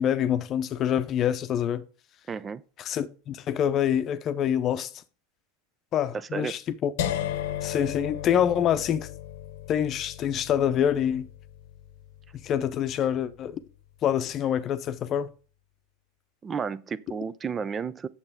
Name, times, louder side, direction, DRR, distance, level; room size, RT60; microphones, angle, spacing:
voice 1, 0.0-1.8 2.8-4.9 5.9-6.9 7.6-9.1 9.7-11.3 12.4-13.6 14.0-15.3, left 9 dB, 40° left, 0.7 m, -26 dB
voice 2, 2.3-2.6 6.1-6.5 16.4-18.1, right 6 dB, 25° right, 0.4 m, -32 dB
sound 1, 7.0-12.9, left 11 dB, 65° left, 0.9 m, -35 dB
8.7 x 7.0 x 3.6 m
hypercardioid pair, 90°, 0 cm